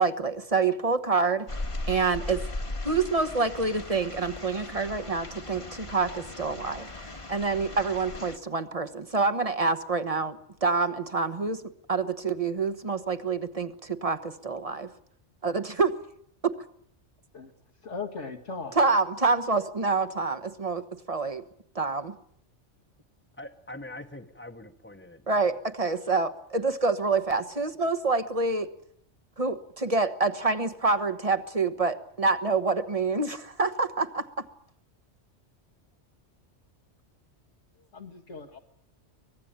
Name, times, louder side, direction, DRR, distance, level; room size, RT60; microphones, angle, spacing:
voice 1, 0.0-1.5 1.9-2.5 2.8-6.9 7.3-14.9 15.4-16.0 16.4-16.5 18.8-21.4 21.7-22.1 25.3-28.7 29.4-34.4, right 4 dB, 30° right, 11 dB, 1.2 m, -27 dB
sound 1, 1.5-8.4, left 2 dB, 25° left, 1.4 m, -38 dB
voice 2, 17.8-18.8 37.8-38.6, left 4 dB, 80° left, 2 dB, 2.3 m, -38 dB
voice 3, 23.4-25.5, left 1 dB, 10° left, 2 dB, 1.2 m, -43 dB
24.0 x 19.0 x 8.9 m, 0.69 s
omnidirectional pair, 1.2 m